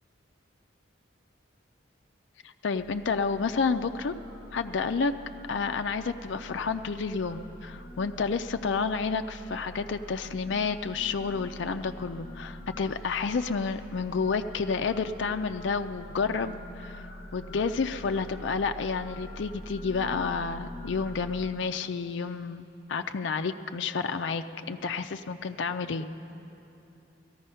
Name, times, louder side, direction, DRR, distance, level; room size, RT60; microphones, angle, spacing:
voice 1, 2.6-4.1 4.5-5.1 5.5-17.1 17.3-26.1, left 5 dB, 65° left, 8 dB, 0.4 m, -30 dB
sound 1, 2.7-21.5, equal, 25° left, 1.9 m, -45 dB
17.5 x 14.0 x 5.6 m, 2.8 s
head